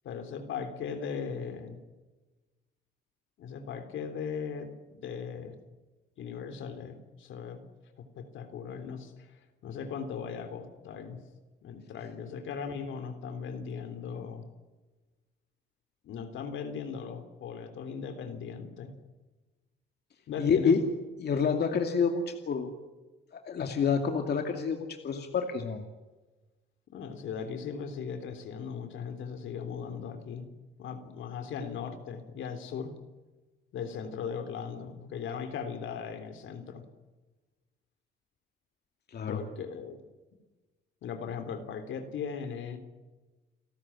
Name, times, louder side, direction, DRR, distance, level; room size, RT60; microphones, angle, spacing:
voice 1, 0.0-1.8 3.4-5.6 6.2-7.6 8.0-11.2 11.6-14.4 16.0-18.9 20.3-20.8 26.9-30.4 30.8-32.9 33.7-36.8 39.3-40.0 41.0-42.8, left 6 dB, 75° left, 7 dB, 3.5 m, -38 dB
voice 2, 20.4-20.8 21.2-22.7 23.3-25.8 39.1-39.4, left 6 dB, 55° left, 4 dB, 2.5 m, -28 dB
29.5 x 13.5 x 10.0 m, 1.2 s
cardioid pair, 90°, 20 cm